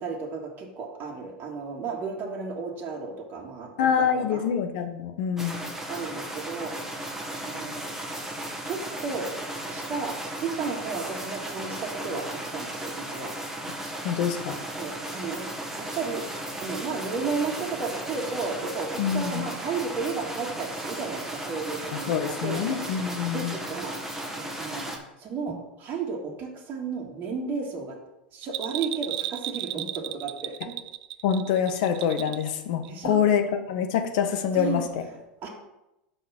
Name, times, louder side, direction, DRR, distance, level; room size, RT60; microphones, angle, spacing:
voice 1, 0.0-3.7 4.0-4.4 5.9-6.7 7.3-7.8 8.6-9.3 9.7-13.3 14.8-15.5 15.8-16.2 16.6-22.8 23.2-24.0 24.4-24.9 25.2-28.0 28.3-30.8 32.8-33.2 34.5-34.9 35.4-35.5, right 4 dB, 40° right, -1 dB, 1.8 m, -33 dB
voice 2, 3.8-5.6 14.0-14.6 19.0-19.5 22.1-23.5 31.2-34.8, left 8 dB, 60° left, 7 dB, 1.1 m, -25 dB
sound 1, 5.4-25.0, right 1 dB, 5° right, 1.6 m, -35 dB
Bell, 28.4-32.5 32.8-32.9, right 14 dB, 60° right, 0.4 m, -34 dB
5.5 x 5.5 x 5.9 m, 0.90 s
figure-of-eight pair, 85°, 5 cm